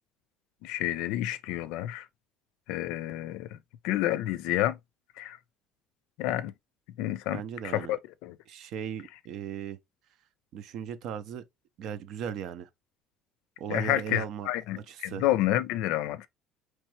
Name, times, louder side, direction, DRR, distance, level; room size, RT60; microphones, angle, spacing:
voice 1, 0.6-2.1 2.7-3.6 3.8-4.8 5.2-5.4 6.2-6.5 7.0-7.4 7.7-8.3 13.7-16.3, left 14 dB, 80° left, 0.4 m, -29 dB
voice 2, 7.3-8.0 8.5-9.8 10.5-11.4 11.8-12.7 13.6-14.5 14.9-15.2, right 8 dB, 60° right, 0.6 m, -37 dB
4.4 x 3.2 x 3.1 m
cardioid pair, 125°, 0 cm